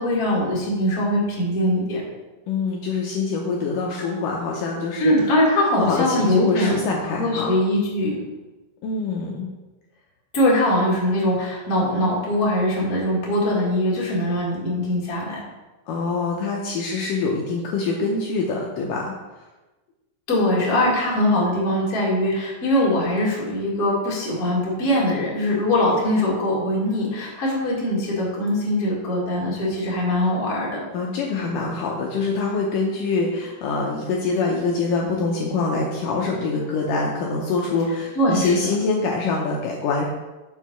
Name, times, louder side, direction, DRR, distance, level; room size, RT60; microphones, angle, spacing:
voice 1, 0.0-2.0 5.0-8.2 10.3-15.4 20.3-30.8 38.1-38.6, left 1 dB, 35° left, -5 dB, 1.6 m, -22 dB
voice 2, 2.5-5.1 5.8-7.5 8.8-9.5 15.9-19.1 30.9-40.0, left 4 dB, 90° left, -2 dB, 1.8 m, -24 dB
6.8 x 4.7 x 5.5 m, 1.1 s
omnidirectional pair, 4.8 m